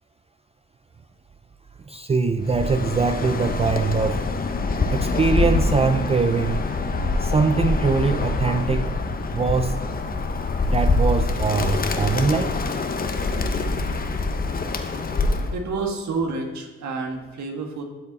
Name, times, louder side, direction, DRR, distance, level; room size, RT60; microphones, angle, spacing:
voice 1, 1.9-4.2 4.9-6.6 7.2-8.9 9.3-9.8 10.1-10.2 10.7-12.5, right 4 dB, 20° right, 7 dB, 0.4 m, -22 dB
Bird, 2.4-15.6, left 3 dB, 30° left, 0.8 m, -25 dB
voice 2, 15.5-17.8, right 3 dB, 65° right, 3 dB, 1.5 m, -29 dB
12.5 x 5.3 x 4.0 m, 1.2 s
cardioid pair, 90°, 30 cm